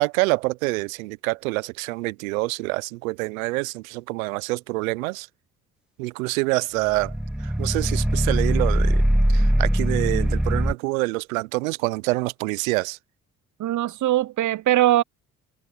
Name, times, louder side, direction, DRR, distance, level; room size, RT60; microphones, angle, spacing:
voice 1, 0.0-5.3 6.0-7.1 7.4-9.0 9.3-13.0, right 23 dB, 85° right, 0.8 m, -26 dB
sound 1, 6.9-10.7, equal, ahead, 1.2 m, -21 dB
voice 2, 13.6-15.0, right 14 dB, 50° right, 0.8 m, -21 dB
hypercardioid pair, 45°, 40 cm